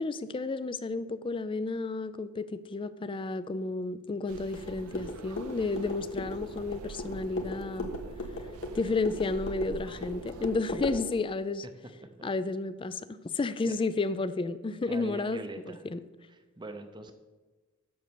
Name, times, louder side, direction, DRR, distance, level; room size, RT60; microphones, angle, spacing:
voice 1, 0.0-7.9 8.7-11.6 12.2-15.4 15.7-16.0, left 3 dB, 25° left, 0.4 m, -32 dB
sound 1, 4.3-10.6, right 6 dB, 70° right, 0.3 m, -47 dB
sound 2, 4.5-11.0, left 1 dB, 65° left, 1.4 m, -38 dB
voice 2, 14.9-15.8 16.3-17.1, right 2 dB, 20° right, 0.7 m, -42 dB
7.8 x 6.4 x 6.9 m
head